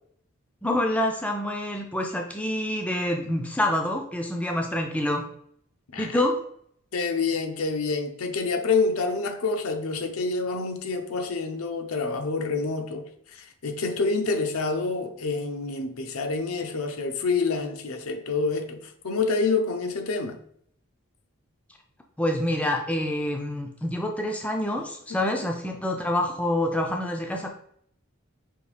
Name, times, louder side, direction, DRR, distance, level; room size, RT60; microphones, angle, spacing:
voice 1, 0.6-5.2 6.0-6.4 22.2-27.5, left 1 dB, 5° left, 0.4 m, -27 dB
voice 2, 6.9-20.4, left 4 dB, 85° left, 0.6 m, -27 dB
5.3 x 2.6 x 3.3 m
head